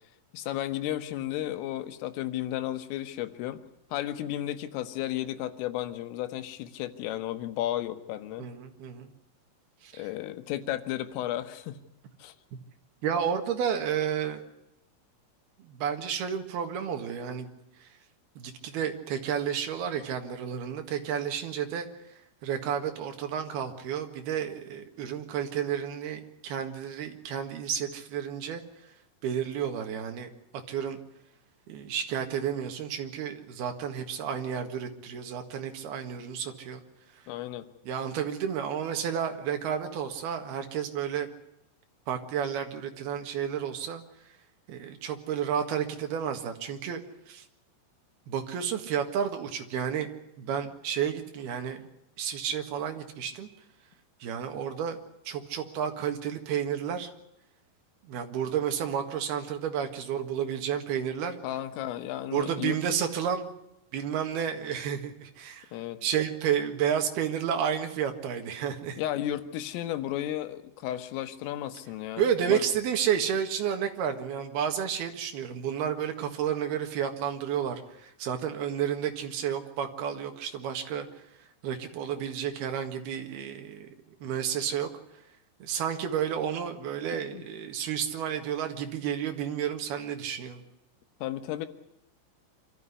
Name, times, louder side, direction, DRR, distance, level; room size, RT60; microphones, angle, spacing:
voice 1, 0.3-3.6 3.9-8.5 10.0-11.8 12.2-12.3 37.3-37.7 61.4-62.8 65.7-66.0 69.0-72.6 87.3-87.4 91.2-91.7, left 13 dB, 85° left, 11 dB, 3.8 m, -33 dB
voice 2, 8.4-9.1 9.8-10.0 13.0-14.4 15.6-17.5 17.8-17.9 18.4-21.9 22.4-28.6 29.2-30.3 30.7-31.0 31.7-36.8 37.8-41.3 42.1-44.0 44.7-47.0 47.3-47.4 48.3-50.1 50.4-51.9 52.2-53.5 54.2-55.0 55.2-57.1 58.1-61.4 62.3-63.5 63.9-65.7 66.0-69.0 72.2-81.1 81.6-84.9 85.6-90.6, right 8 dB, 60° right, 5 dB, 3.3 m, -31 dB
26.0 x 13.5 x 9.6 m, 0.86 s
omnidirectional pair, 5.7 m